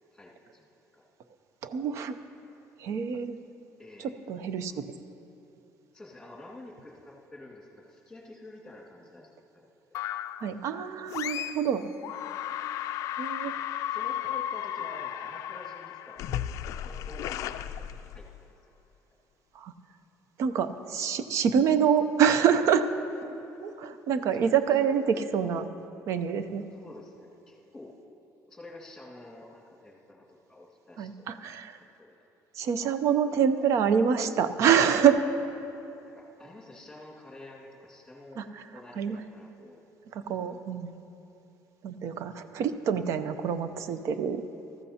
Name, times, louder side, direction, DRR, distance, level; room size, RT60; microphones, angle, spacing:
voice 1, 0.1-1.0 3.8-4.1 4.7-4.8 5.9-10.0 13.4-17.9 18.1-18.3 23.3-23.4 26.7-27.9 28.5-31.3 32.0-32.2 36.1-38.5 38.7-39.8, left 1 dB, 5° left, -3 dB, 2.0 m, -49 dB
voice 2, 1.6-2.2 2.8-3.4 4.0-4.9 10.4-11.8 13.2-13.5 19.5-19.7 20.4-22.9 23.8-25.7 26.1-26.6 31.0-31.8 32.5-35.2 38.4-38.6 39.0-39.2 40.1-40.9 41.8-44.4, right 7 dB, 55° right, 11 dB, 0.6 m, -26 dB
sound 1, 9.9-10.5 11.1-11.7 12.0-18.5, left 11 dB, 60° left, 0.3 m, -35 dB
19.5 x 14.0 x 2.9 m, 2.9 s
cardioid pair, 160°, 6 cm